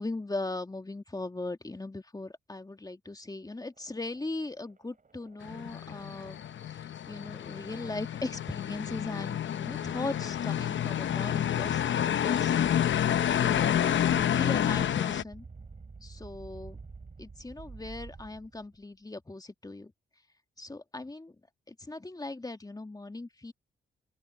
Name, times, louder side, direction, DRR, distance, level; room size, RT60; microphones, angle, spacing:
voice 1, 0.0-6.4 6.7-15.4 16.0-16.8 17.2-19.9 20.6-21.3 21.7-23.5, left 2 dB, 20° left, 1.8 m, -39 dB
sound 1, 3.7-18.8, right 4 dB, 40° right, 6.0 m, -51 dB
sound 2, 5.4-15.2, left 10 dB, 65° left, 0.7 m, -29 dB
open air
cardioid pair, 60°, 21 cm